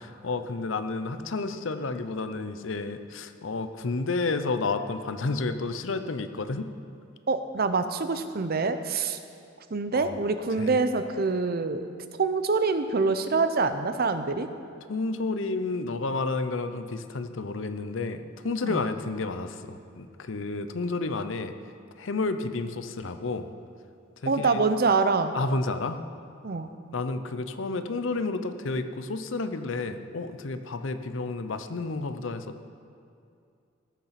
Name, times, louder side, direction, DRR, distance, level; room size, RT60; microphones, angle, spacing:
voice 1, 0.0-6.7 9.9-10.1 10.6-10.8 14.9-21.5 22.0-23.5 24.2-24.6 25.3-26.0 26.9-32.7, left 3 dB, 75° left, 10 dB, 0.7 m, -31 dB
voice 2, 7.3-9.2 9.7-11.8 12.2-14.5 18.6-18.9 24.3-25.3 26.4-26.7, right 4 dB, 50° right, 10 dB, 0.7 m, -25 dB
18.0 x 6.9 x 5.8 m, 2.5 s
head